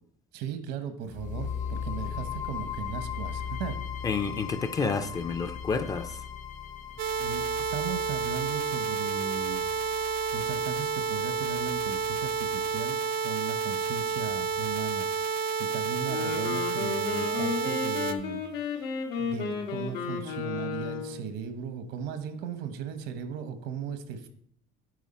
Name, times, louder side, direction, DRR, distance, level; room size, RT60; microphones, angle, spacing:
voice 1, 0.3-3.8 7.2-9.7 10.0-18.4 19.2-24.3, right 7 dB, 75° right, 10 dB, 1.0 m, -37 dB
sound 1, 1.1-15.1, left 8 dB, 45° left, 0.8 m, -39 dB
voice 2, 4.0-6.2, left 4 dB, 20° left, 9 dB, 0.4 m, -30 dB
sound 2, 7.0-18.1, right 6 dB, 60° right, 0.7 m, -30 dB
Wind instrument woodwind instrument, 16.0-21.3, left 6 dB, 85° left, 1.4 m, -33 dB
9.2 x 4.8 x 4.2 m, 0.67 s
cardioid pair, 150°, 17 cm